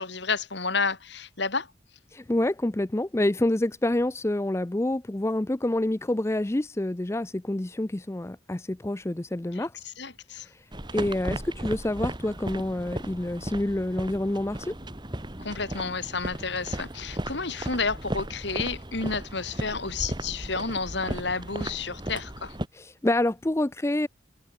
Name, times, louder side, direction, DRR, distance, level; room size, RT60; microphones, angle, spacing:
voice 1, 0.0-1.7 9.5-9.6 10.0-10.5 15.4-22.6, left 4 dB, 60° left, 2.8 m, -31 dB
voice 2, 2.1-9.9 10.4-10.6 10.9-14.7 22.7-24.1, left 1 dB, 15° left, 0.4 m, -27 dB
sound 1, 10.7-22.7, right 1 dB, 20° right, 2.3 m, -36 dB
head